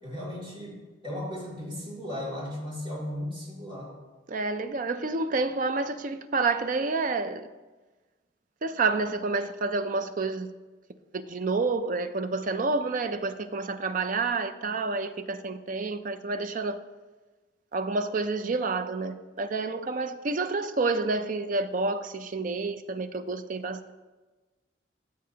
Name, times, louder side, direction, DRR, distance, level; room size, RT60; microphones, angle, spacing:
voice 1, 0.0-3.9, left 1 dB, 25° right, 2.7 m, -36 dB
voice 2, 4.3-7.5 8.6-10.5 11.1-16.8 17.7-23.9, right 3 dB, 40° right, 0.4 m, -29 dB
14.0 x 7.6 x 2.8 m
head